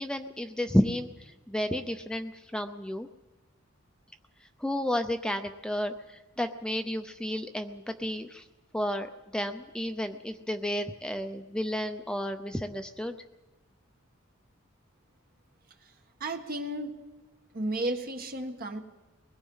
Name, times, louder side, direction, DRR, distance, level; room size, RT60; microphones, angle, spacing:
voice 1, 0.0-3.1 4.6-8.4 8.7-9.1 9.3-13.2, equal, 5° left, 7 dB, 0.6 m, -31 dB
voice 2, 16.2-17.0 17.5-18.8, right 1 dB, 45° right, 5 dB, 1.6 m, -33 dB
23.0 x 20.0 x 5.6 m, 1.2 s
head